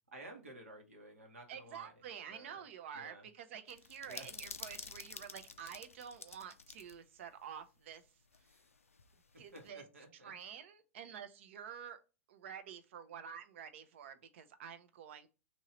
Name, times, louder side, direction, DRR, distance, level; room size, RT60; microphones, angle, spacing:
voice 1, 0.1-2.0 2.3-2.6 2.9-3.3 4.0-4.3 9.5-10.3, right 1 dB, 80° right, 1.2 m, -53 dB
voice 2, 1.5-8.0 9.4-9.8 10.2-12.0 12.3-15.3, right 8 dB, 60° right, 0.6 m, -49 dB
sound 1, 3.7-7.0 7.2-7.3 8.3-9.7, left 4 dB, 90° left, 0.4 m, -50 dB
2.9 x 2.7 x 4.3 m
figure-of-eight pair, 95°, 7 cm